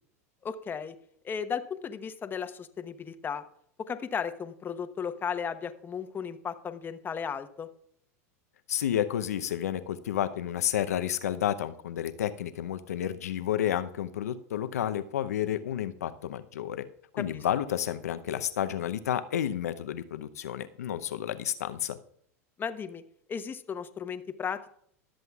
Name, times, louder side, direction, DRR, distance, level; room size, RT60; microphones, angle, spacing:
voice 1, 0.4-0.9 1.2-3.4 3.9-7.7 17.3-17.4 22.6-23.0 23.3-24.7, left 6 dB, 25° left, 9 dB, 1.0 m, -35 dB
voice 2, 8.7-16.8 17.1-22.0, left 10 dB, 80° left, 11 dB, 0.7 m, -31 dB
23.0 x 7.8 x 2.4 m, 0.65 s
hypercardioid pair, 100°, 8 cm